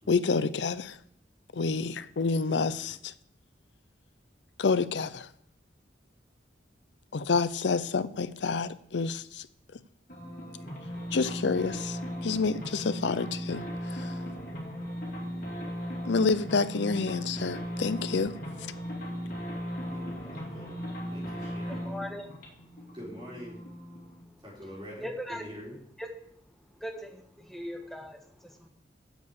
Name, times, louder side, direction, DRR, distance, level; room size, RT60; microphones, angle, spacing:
voice 1, 0.1-1.0 1.5-3.1 4.6-5.3 7.1-9.5 11.1-14.1 16.0-18.3, left 4 dB, 80° left, 0.6 m, -28 dB
voice 2, 2.5-2.9 19.8-20.8 21.1-21.9 22.9-23.6 24.4-25.8, equal, 25° right, 4.7 m, -45 dB
sound 1, 10.1-24.2, equal, 50° left, 2.8 m, -37 dB
voice 3, 21.7-23.0 24.2-24.4 25.0-25.4 26.0-26.1 26.6-28.7, equal, ahead, 1.4 m, -40 dB
7.9 x 6.9 x 8.2 m
head